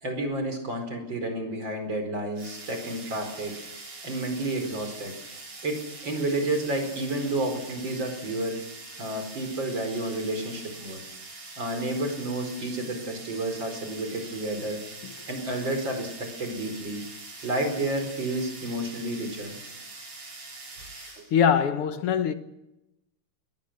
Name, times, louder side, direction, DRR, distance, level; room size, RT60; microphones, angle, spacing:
voice 1, 0.0-3.5 4.0-5.1 5.6-8.6 9.0-11.0 11.6-14.8 15.3-17.0 17.4-19.6 21.2-21.3, right 1 dB, 55° right, 5.4 m, -30 dB
Electric Toothbrush, 2.4-21.3, right 3 dB, 85° right, 5.4 m, -43 dB
voice 2, 21.0-22.3, left 8 dB, 90° left, 2.2 m, -24 dB
22.0 x 18.0 x 7.9 m
omnidirectional pair, 2.4 m